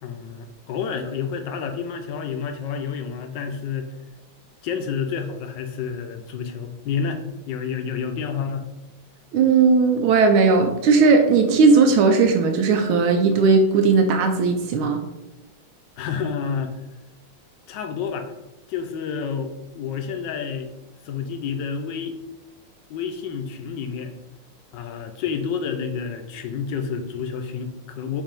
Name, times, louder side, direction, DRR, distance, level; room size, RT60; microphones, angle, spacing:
voice 1, 0.0-3.9 4.6-8.7 16.0-16.7 17.7-18.3 18.7-20.7 21.0-22.1 22.9-24.1 24.7-28.2, left 6 dB, 70° left, 6 dB, 1.2 m, -29 dB
voice 2, 9.3-15.0, right 4 dB, 85° right, 5 dB, 1.5 m, -17 dB
7.2 x 2.7 x 5.1 m, 0.98 s
omnidirectional pair, 2.3 m